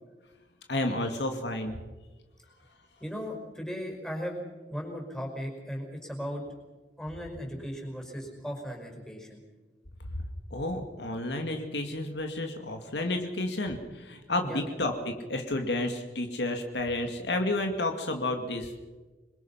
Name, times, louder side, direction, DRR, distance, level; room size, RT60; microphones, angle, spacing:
voice 1, 0.7-1.8 10.5-18.7, left 2 dB, 70° left, 5 dB, 2.1 m, -31 dB
voice 2, 3.0-4.4 4.7-6.4 7.0-9.4 14.4-14.6, equal, 5° left, 0 dB, 5.4 m, -37 dB
26.5 x 21.5 x 5.9 m, 1.2 s
head